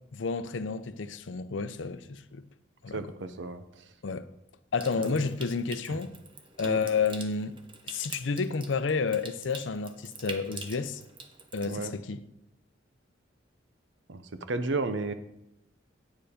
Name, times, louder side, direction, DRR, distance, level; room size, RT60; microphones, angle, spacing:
voice 1, 0.1-2.4 2.8-3.0 4.0-4.3 4.7-6.1 6.6-7.6 7.9-11.0 11.5-12.2, left 5 dB, 75° left, 0.6 m, -30 dB
voice 2, 2.9-3.6 5.0-5.3 5.9-6.0 6.6-6.8 11.7-11.9 14.1-14.2 14.5-15.1, right 3 dB, 70° right, 0.7 m, -33 dB
Water tap faucet / Sink (filling or washing) / Trickle dribble, 4.8-11.7, right 4 dB, 25° right, 0.9 m, -46 dB
8.9 x 7.0 x 5.1 m
head